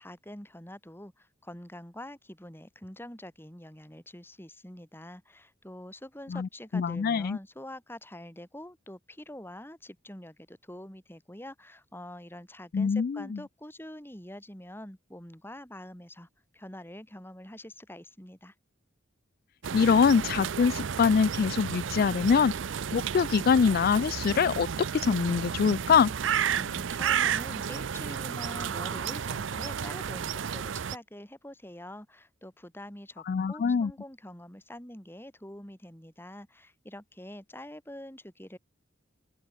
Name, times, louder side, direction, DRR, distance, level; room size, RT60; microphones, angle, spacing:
voice 1, 0.0-16.3 16.5-18.5 26.5-38.6, left 1 dB, 10° left, 4.9 m, -45 dB
voice 2, 6.7-7.4 12.7-13.2 19.7-22.5 22.9-26.1 33.3-33.9, left 6 dB, 50° left, 0.3 m, -24 dB
sound 1, 19.6-31.0, right 7 dB, 70° right, 0.5 m, -32 dB
open air
head